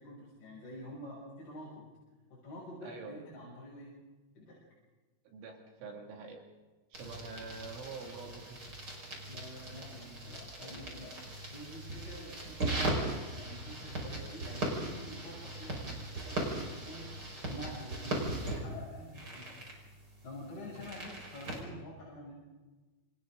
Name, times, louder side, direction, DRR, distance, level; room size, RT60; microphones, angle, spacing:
voice 1, 0.0-1.9 2.3-3.9 4.4-4.6 9.3-11.2 11.5-17.1 17.5-19.6 20.2-22.4, left 1 dB, 50° left, -7 dB, 8.8 m, -47 dB
voice 2, 2.8-3.2 5.2-6.4 6.9-8.8 20.7-20.9, right 4 dB, 75° right, 1 dB, 4.9 m, -46 dB
sound 1, 6.9-21.6, right 2 dB, 20° right, 5.2 m, -39 dB
29.0 x 28.5 x 3.9 m, 1.2 s
omnidirectional pair, 5.7 m